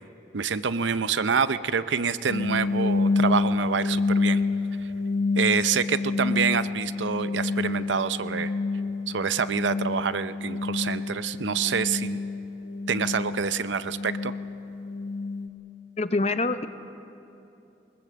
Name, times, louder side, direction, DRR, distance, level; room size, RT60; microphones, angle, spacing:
voice 1, 0.3-4.4 5.4-8.5 9.1-12.2 12.9-14.3, right 6 dB, 80° right, 13 dB, 0.6 m, -27 dB
sound 1, 2.3-15.5, left 3 dB, 85° left, 1.5 m, -28 dB
voice 2, 16.0-16.7, left 2 dB, 35° left, 11 dB, 0.7 m, -25 dB
21.0 x 20.0 x 7.6 m, 2.9 s
head